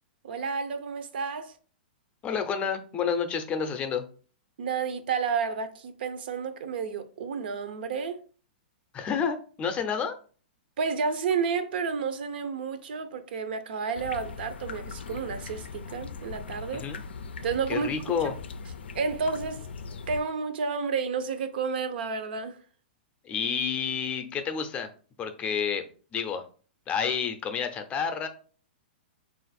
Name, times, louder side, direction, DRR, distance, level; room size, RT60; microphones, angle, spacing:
voice 1, 0.2-1.5 4.6-8.2 10.8-16.9 17.4-17.9 18.9-19.6 20.1-22.6, right 5 dB, 70° right, 0.6 m, -31 dB
voice 2, 2.2-4.0 8.9-10.2 16.7-17.0 17.7-18.3 23.2-24.9 25.2-25.8 26.1-26.4 26.9-28.3, left 7 dB, 25° left, 0.5 m, -29 dB
sound 1, 13.9-20.2, left 5 dB, 90° left, 0.4 m, -40 dB
3.8 x 2.5 x 4.0 m
hypercardioid pair, 135°, 6 cm